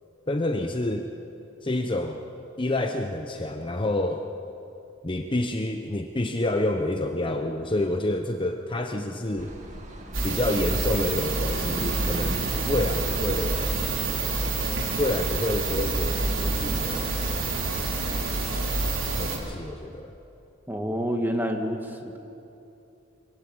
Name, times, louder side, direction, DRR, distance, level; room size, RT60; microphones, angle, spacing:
voice 1, 0.3-1.1 1.6-2.2 2.6-4.2 5.0-9.5 10.2-13.6 15.0-17.1 19.1-20.1, left 1 dB, 25° left, 5 dB, 0.9 m, -28 dB
sound 1, 9.4-17.8, right 1 dB, 35° right, 2.3 m, -39 dB
sound 2, 10.1-19.4, right 3 dB, 85° right, 3.8 m, -27 dB
voice 2, 20.7-22.2, equal, 10° right, 3 dB, 1.8 m, -28 dB
23.5 x 18.0 x 7.9 m, 2.8 s
head